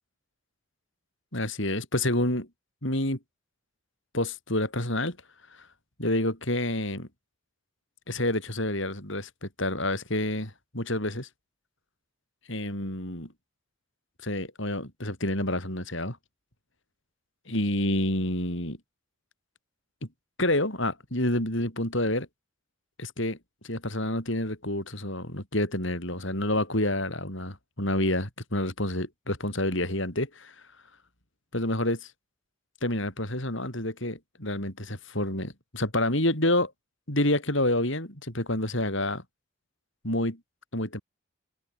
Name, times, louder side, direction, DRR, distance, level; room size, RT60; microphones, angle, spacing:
voice 1, 1.3-2.5 2.8-3.2 4.1-5.2 6.0-7.1 8.1-11.3 12.5-13.3 14.2-16.2 17.5-18.8 20.0-20.1 20.4-22.3 23.0-23.4 23.6-27.5 27.8-30.6 31.5-32.1 32.8-36.7 37.1-39.2 40.0-40.4 40.7-41.0, left 1 dB, 60° left, 6.9 m, -28 dB
open air
head